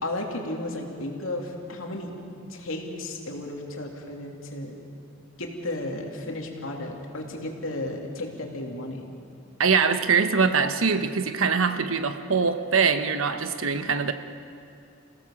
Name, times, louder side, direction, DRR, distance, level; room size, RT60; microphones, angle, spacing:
voice 1, 0.0-2.1 2.5-4.8 5.4-9.1, left 1 dB, 80° left, 1 dB, 3.0 m, -33 dB
voice 2, 9.6-14.1, right 5 dB, 85° right, 9 dB, 1.1 m, -23 dB
29.0 x 17.0 x 7.3 m, 2.5 s
head